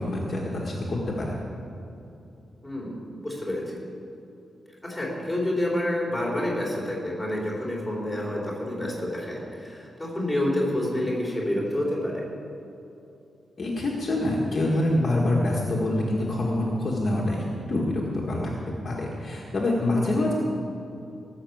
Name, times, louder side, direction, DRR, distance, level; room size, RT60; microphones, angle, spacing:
voice 1, 0.0-1.3 13.6-18.5 18.8-20.3, left 1 dB, 40° left, -3 dB, 1.7 m, -26 dB
voice 2, 2.6-3.0 3.2-3.7 4.8-12.2 20.2-20.3, left 1 dB, 5° left, -4 dB, 3.5 m, -28 dB
18.0 x 6.6 x 7.9 m, 2.8 s
wide cardioid pair, 160°, 0 cm